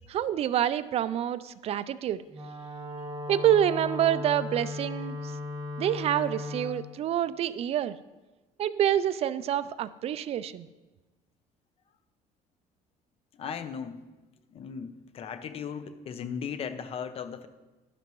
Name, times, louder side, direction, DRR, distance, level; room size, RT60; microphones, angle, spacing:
voice 1, 0.1-2.2 3.3-5.3 5.8-8.0 8.6-10.7, right 10 dB, 45° right, 15 dB, 0.4 m, -27 dB
Wind instrument woodwind instrument, 2.3-6.8, left 2 dB, 25° right, 1.2 m, -36 dB
voice 2, 13.4-14.0 14.5-17.5, left 7 dB, 40° left, 11 dB, 0.7 m, -37 dB
11.5 x 11.0 x 3.1 m, 1.2 s
cardioid pair, 145°, 15 cm